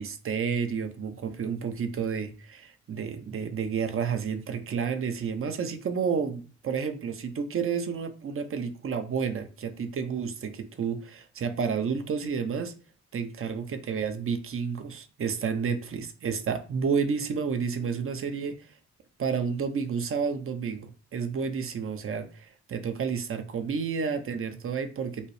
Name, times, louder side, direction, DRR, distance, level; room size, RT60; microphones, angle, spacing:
voice 1, 0.0-12.7 13.1-18.8 19.2-25.3, right 6 dB, 45° right, 0.7 m, -30 dB
5.4 x 2.0 x 4.8 m
wide cardioid pair, 150°, 29 cm